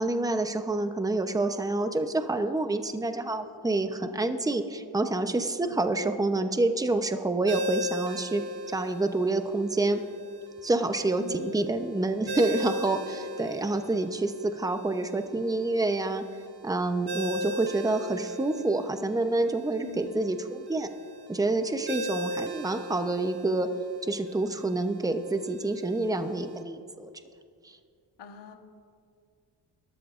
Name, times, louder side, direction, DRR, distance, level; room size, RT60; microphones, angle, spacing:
voice 1, 0.0-10.0 10.6-16.2 16.6-20.9 21.3-23.8 24.0-27.1 27.6-27.8, right 2 dB, 10° right, 7 dB, 0.8 m, -28 dB
Ringtone, 7.5-26.6, left 1 dB, 65° right, 1.6 m, -39 dB
voice 2, 11.2-11.6 19.8-20.2 28.2-28.6, left 8 dB, 75° left, 4 dB, 1.5 m, -43 dB
24.0 x 13.0 x 2.6 m, 2.3 s
cardioid pair, 95°, 43 cm